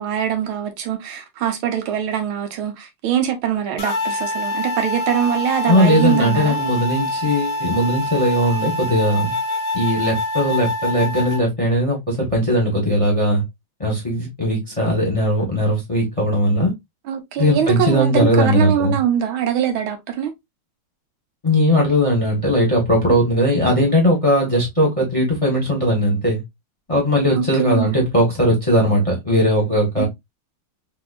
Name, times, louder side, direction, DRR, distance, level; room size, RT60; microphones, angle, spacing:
voice 1, 0.0-6.6 17.1-20.3 27.3-28.1 30.0-30.1, right 9 dB, 75° right, 1.6 m, -23 dB
sound 1, 3.8-11.4, left 1 dB, 45° left, 1.0 m, -25 dB
voice 2, 5.6-9.3 9.7-13.4 13.8-16.7 17.4-19.0 21.4-26.4 26.9-30.0, equal, 20° left, 1.0 m, -18 dB
4.0 x 2.7 x 2.4 m
omnidirectional pair, 2.3 m